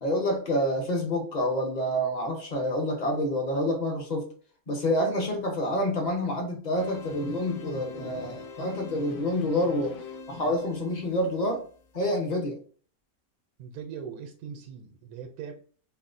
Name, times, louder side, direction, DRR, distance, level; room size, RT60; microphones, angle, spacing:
voice 1, 0.0-4.3 4.7-10.0 10.3-11.6 11.9-12.6, left 1 dB, 40° left, 2 dB, 0.7 m, -28 dB
sound 1, 6.8-12.0, left 4 dB, 70° left, 1.0 m, -44 dB
voice 2, 13.6-15.5, right 7 dB, 85° right, 5 dB, 1.1 m, -40 dB
4.2 x 2.0 x 2.5 m, 0.42 s
omnidirectional pair, 1.5 m